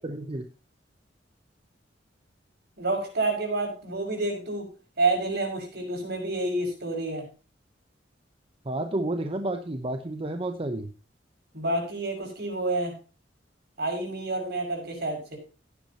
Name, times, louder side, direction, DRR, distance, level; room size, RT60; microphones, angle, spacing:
voice 1, 0.0-0.4 8.6-10.9, right 1 dB, 30° right, 7 dB, 0.9 m, -31 dB
voice 2, 2.8-4.7 5.0-7.3 11.5-12.9 13.8-15.4, right 2 dB, 60° right, 2 dB, 6.2 m, -28 dB
16.0 x 10.5 x 2.9 m, 0.34 s
head